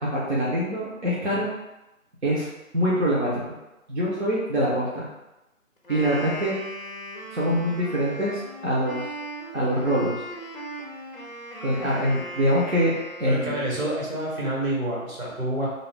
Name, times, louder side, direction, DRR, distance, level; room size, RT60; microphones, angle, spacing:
voice 1, 0.0-1.5 2.2-2.5 2.7-3.5 3.9-5.0 5.9-6.5 7.3-9.0 9.5-10.2 11.6-12.9 13.2-13.5, equal, 55° right, -7 dB, 0.8 m, -24 dB
Wind instrument woodwind instrument, 5.8-13.8, equal, 40° left, 0.5 m, -38 dB
voice 2, 13.3-15.7, right 1 dB, 80° right, -5 dB, 1.4 m, -28 dB
2.6 x 2.1 x 3.4 m, 0.98 s
figure-of-eight pair, 155°, 41 cm